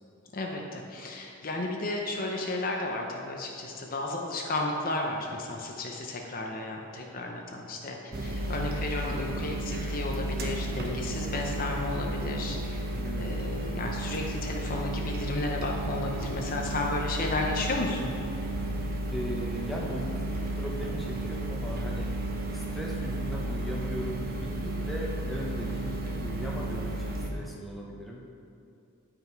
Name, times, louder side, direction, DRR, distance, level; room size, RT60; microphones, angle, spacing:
voice 1, 0.3-12.8 13.2-18.1, left 2 dB, 40° left, 1 dB, 0.7 m, -33 dB
voice 2, 8.1-8.5 12.9-13.3 19.1-22.1 22.5-28.2, equal, ahead, -4 dB, 0.9 m, -38 dB
sound 1, 8.1-27.3, right 1 dB, 45° right, 0.8 m, -33 dB
10.0 x 5.7 x 4.5 m, 2.5 s
head